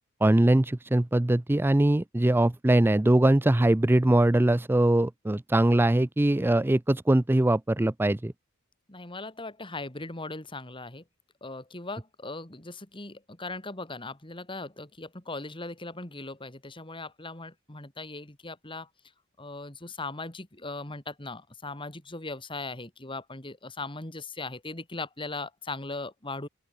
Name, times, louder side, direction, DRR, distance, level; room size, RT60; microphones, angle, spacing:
voice 1, 0.2-8.3, right 1 dB, 10° right, 0.4 m, -22 dB
voice 2, 8.9-11.0 11.4-18.9 19.4-26.5, left 3 dB, 25° left, 2.4 m, -39 dB
open air
head